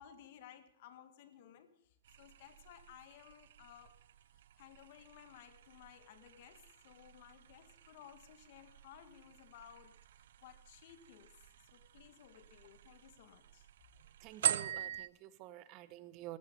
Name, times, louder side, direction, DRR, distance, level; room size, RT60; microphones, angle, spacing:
voice 1, 0.0-4.0 4.6-13.7, left 10 dB, 50° left, 10 dB, 1.7 m, -58 dB
sound 1, 2.0-15.1, right 11 dB, 65° right, 0.7 m, -44 dB
voice 2, 14.2-16.4, right 14 dB, 30° right, 16 dB, 0.7 m, -50 dB
14.0 x 12.5 x 5.2 m, 0.75 s
hypercardioid pair, 155°, 0 cm